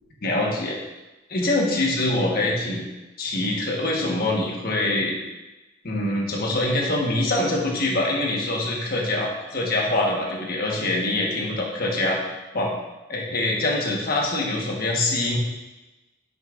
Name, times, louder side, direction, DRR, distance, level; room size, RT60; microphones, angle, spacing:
voice 1, 0.2-0.8 1.3-2.8 3.2-5.1 5.8-12.2 12.5-12.7 13.1-15.4, left 2 dB, 50° left, -1 dB, 1.4 m, -24 dB
9.2 x 6.6 x 2.6 m, 1.1 s
head